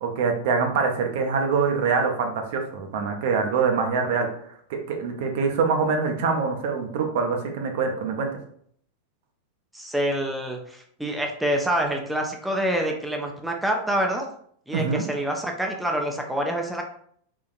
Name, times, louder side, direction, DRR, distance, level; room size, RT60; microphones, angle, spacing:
voice 1, 0.0-4.3 4.9-8.3 14.7-15.0, right 5 dB, 50° right, 4 dB, 0.5 m, -24 dB
voice 2, 9.7-14.2 14.7-16.8, right 1 dB, 5° right, 1 dB, 0.4 m, -26 dB
3.7 x 2.5 x 2.4 m, 0.63 s
figure-of-eight pair, 90°, 0 cm